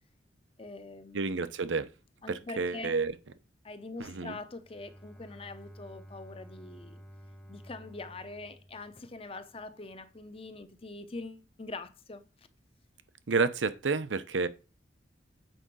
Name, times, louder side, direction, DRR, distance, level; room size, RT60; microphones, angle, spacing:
voice 1, 0.6-1.2 2.2-2.9 3.6-7.0 7.5-12.2, left 2 dB, 30° left, 0.8 m, -43 dB
voice 2, 1.1-1.9 2.3-3.1 4.0-4.4 13.3-14.5, right 4 dB, 85° right, 0.8 m, -30 dB
Bowed string instrument, 4.6-9.5, equal, 10° left, 1.0 m, -52 dB
7.9 x 5.0 x 6.1 m
head